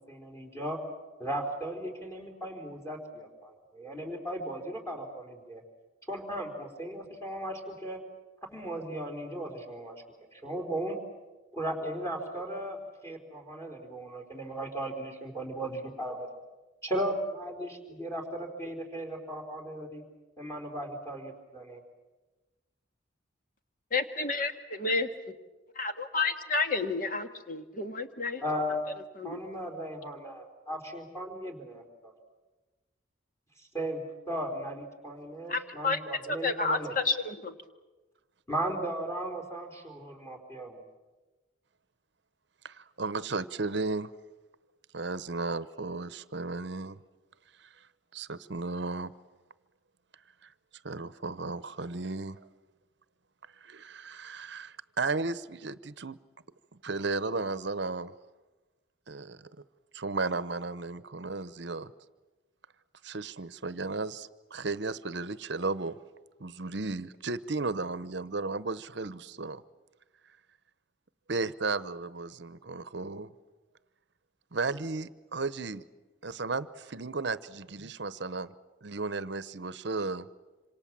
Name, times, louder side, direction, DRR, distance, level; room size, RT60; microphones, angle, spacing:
voice 1, 0.1-0.8 1.2-5.6 6.1-8.0 8.4-10.0 10.3-11.0 11.5-16.3 16.8-20.0 20.4-21.8 28.4-28.9 29.2-32.1 33.7-34.0 34.3-36.9 38.5-40.8, right 1 dB, 15° left, 3 dB, 4.3 m, -36 dB
voice 2, 23.9-25.1 25.8-28.4 29.2-29.4 35.5-36.0 36.3-37.6, left 3 dB, 45° left, 7 dB, 1.7 m, -30 dB
voice 3, 42.6-44.1 44.9-47.0 47.6-47.7 48.1-49.1 50.8-52.4 53.6-56.2 56.8-58.1 59.1-59.4 59.9-61.9 63.0-66.0 66.4-69.6 71.3-73.3 74.5-75.8 76.2-78.5 78.8-80.3, right 3 dB, 60° right, 16 dB, 0.8 m, -34 dB
26.5 x 26.5 x 7.5 m, 1.2 s
head